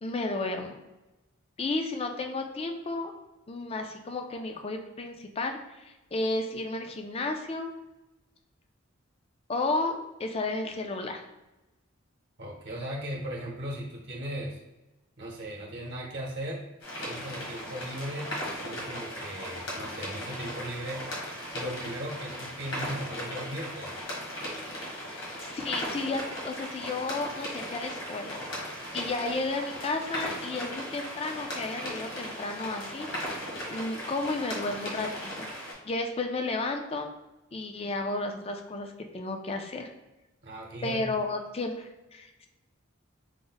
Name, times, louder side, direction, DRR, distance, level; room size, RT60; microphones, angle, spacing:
voice 1, 0.0-0.7 1.6-3.1 3.5-7.7 9.5-11.2 25.1-28.4 28.9-33.1 33.7-35.5 35.8-37.1 37.5-39.9 40.8-42.5, left 2 dB, 30° left, 5 dB, 0.4 m, -33 dB
voice 2, 12.4-14.6 15.2-16.6 17.1-21.0 21.5-23.9 40.4-41.2, equal, 55° right, -2 dB, 0.8 m, -37 dB
sound 1, 16.8-35.7, equal, 70° left, 1.4 m, -37 dB
4.9 x 2.1 x 3.9 m, 1.0 s
head